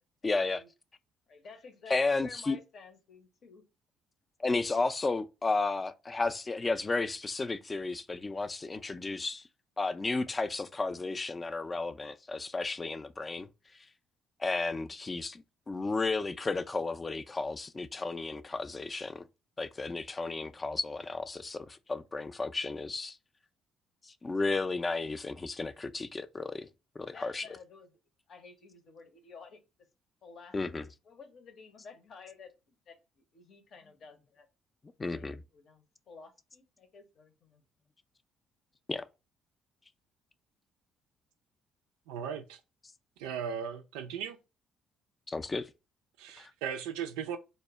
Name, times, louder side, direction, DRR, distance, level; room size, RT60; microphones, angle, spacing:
voice 1, 0.2-0.6 1.9-2.6 4.4-9.4 9.8-13.5 14.4-19.2 19.6-23.2 24.1-26.7 27.0-27.4 30.5-30.8 35.0-35.4 38.9-39.0 45.3-45.7 46.4-46.5, left 3 dB, 30° left, 0.3 m, -33 dB
voice 2, 1.3-3.6 27.1-27.9 28.3-29.6 30.2-30.6 31.0-32.5 32.9-34.5 35.1-37.6, left 5 dB, 60° left, 0.7 m, -52 dB
voice 3, 42.1-42.6 43.2-44.4 46.2-47.4, right 8 dB, 85° right, 0.3 m, -37 dB
2.1 x 2.0 x 3.4 m
supercardioid pair, 60°, 0 cm